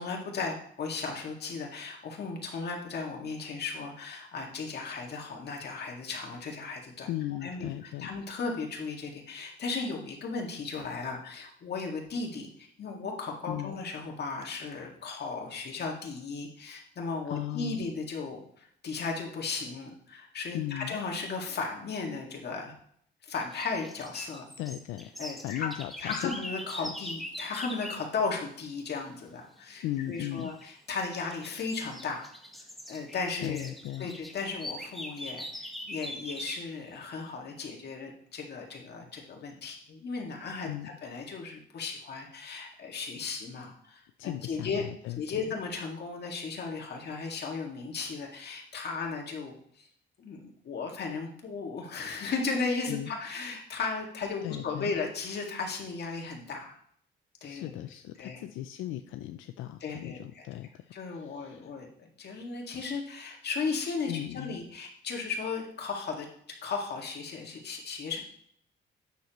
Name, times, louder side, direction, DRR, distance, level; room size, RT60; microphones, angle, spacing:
voice 1, 0.0-7.1 7.4-22.8 23.2-24.5 25.2-25.7 26.0-32.2 32.9-33.7 34.0-40.7 41.0-44.8 45.2-49.9 50.2-56.8 57.4-57.7 58.2-58.4 59.8-60.5 60.9-66.3 66.6-68.2, left 4 dB, 55° left, 0 dB, 2.1 m, -36 dB
voice 2, 7.1-8.1 13.5-13.8 17.3-17.9 20.5-21.0 24.6-26.3 26.8-26.9 29.8-30.5 33.4-34.2 40.6-40.9 44.2-45.4 52.9-53.1 54.4-54.9 57.4-61.7 64.0-64.6, left 14 dB, 90° left, 8 dB, 0.4 m, -37 dB
sound 1, 23.3-28.1 30.3-30.7 31.1-36.7, equal, ahead, 1.1 m, -42 dB
9.1 x 6.7 x 3.1 m, 0.65 s
cardioid pair, 90°, 20 cm